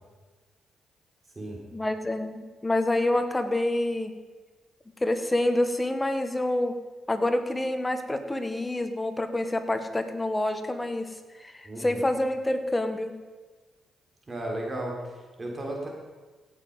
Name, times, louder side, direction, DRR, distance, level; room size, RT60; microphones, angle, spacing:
voice 1, 1.7-4.1 5.0-6.8 7.1-13.1, left 1 dB, 20° left, 8 dB, 1.6 m, -27 dB
voice 2, 11.6-12.0 14.3-15.9, right 1 dB, 35° right, -1 dB, 3.4 m, -34 dB
16.5 x 7.2 x 5.5 m, 1.3 s
hypercardioid pair, 45°, 0 cm